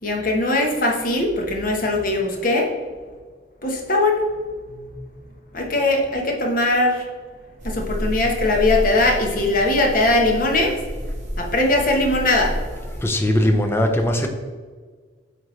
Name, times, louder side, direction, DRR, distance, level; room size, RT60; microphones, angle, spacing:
voice 1, 0.0-2.7 3.6-4.3 4.7-5.0 5.5-7.1 7.6-10.8 11.4-12.6, left 2 dB, 50° left, 1 dB, 1.1 m, -20 dB
sound 1, 7.6-13.1, equal, 40° right, 1.3 m, -30 dB
voice 2, 13.0-14.3, left 1 dB, 15° left, 4 dB, 0.6 m, -19 dB
8.7 x 3.5 x 3.2 m, 1.5 s
head